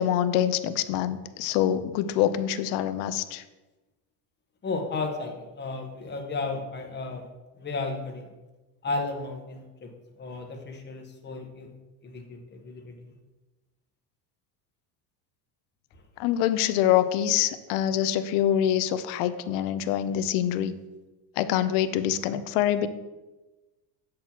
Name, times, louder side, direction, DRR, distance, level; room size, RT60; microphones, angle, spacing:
voice 1, 0.0-3.4 16.2-20.7 21.4-22.9, left 11 dB, 85° left, 12 dB, 0.7 m, -25 dB
voice 2, 4.6-7.3 7.6-8.3 8.8-9.9 10.2-11.7 12.0-13.1, left 3 dB, 25° left, 3 dB, 1.1 m, -34 dB
7.7 x 6.0 x 2.9 m, 1.1 s
cardioid pair, 125°, 46 cm